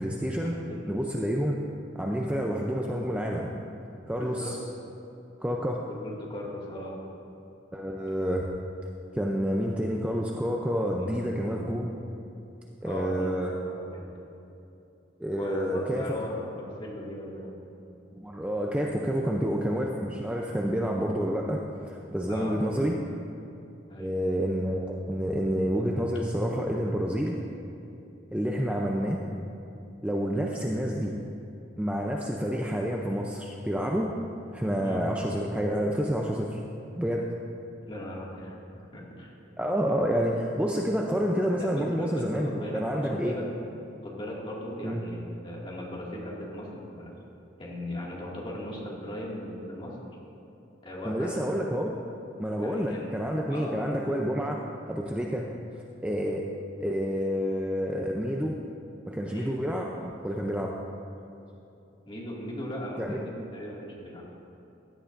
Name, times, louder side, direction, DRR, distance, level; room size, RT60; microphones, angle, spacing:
voice 1, 0.0-0.6 0.8-1.6 1.9-3.5 4.1-4.6 5.4-5.8 7.7-8.5 9.1-11.9 12.8-13.5 15.2-16.1 18.1-23.0 24.0-27.4 28.3-29.2 30.0-31.1 31.8-34.1 34.5-36.6 37.0-37.2 39.6-43.4 44.8-45.0 51.0-51.9 52.4-54.6 54.9-55.5 56.0-56.4 56.8-58.5 59.1-60.7 63.0-63.2, equal, 5° right, -1 dB, 0.5 m, -29 dB
voice 2, 4.2-4.6 5.9-7.0 11.0-11.2 12.8-14.0 15.3-17.6 19.2-19.3 22.3-22.6 23.9-24.2 34.8-35.1 37.9-39.3 41.6-43.5 44.0-47.2 47.6-50.0 50.8-51.4 52.6-53.1 53.5-53.8 59.3-59.6 62.1-64.3, left 1 dB, 30° left, -5 dB, 2.1 m, -38 dB
16.5 x 11.0 x 2.6 m, 2.9 s
head